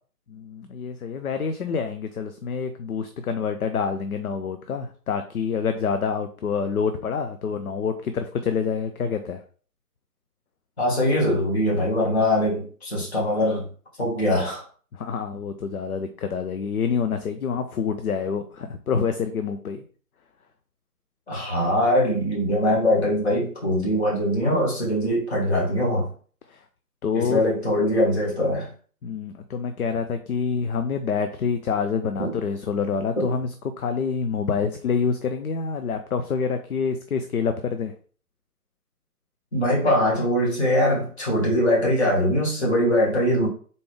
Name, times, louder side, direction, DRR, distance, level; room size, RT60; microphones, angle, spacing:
voice 1, 0.3-9.4 14.9-19.8 26.5-26.6 27.0-27.4 29.0-33.5 33.8-37.9, left 6 dB, 65° left, 8 dB, 0.6 m, -27 dB
voice 2, 10.8-13.7 14.0-14.6 21.3-26.1 27.1-28.7 32.2-32.4 33.2-33.3 39.5-43.5, left 1 dB, 40° left, -3 dB, 2.1 m, -22 dB
4.1 x 3.4 x 3.3 m, 0.43 s
figure-of-eight pair, 155°, 48 cm